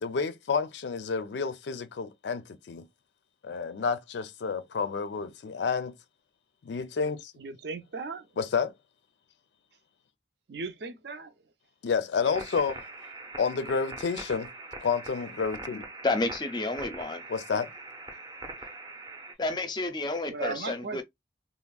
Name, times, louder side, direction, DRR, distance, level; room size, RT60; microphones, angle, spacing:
voice 1, 0.0-2.9 3.4-5.9 6.6-7.3 8.4-8.7 11.8-12.8 13.4-14.5 14.8-15.8 17.3-17.7, left 5 dB, 85° left, 0.4 m, -30 dB
voice 2, 7.4-8.3 10.5-11.3 20.3-21.0, right 4 dB, 75° right, 0.6 m, -37 dB
sound 1, 12.2-19.3, right 2 dB, 25° right, 0.6 m, -42 dB
voice 3, 16.0-17.2 19.4-21.0, left 2 dB, 25° left, 0.4 m, -30 dB
3.4 x 2.0 x 2.3 m
head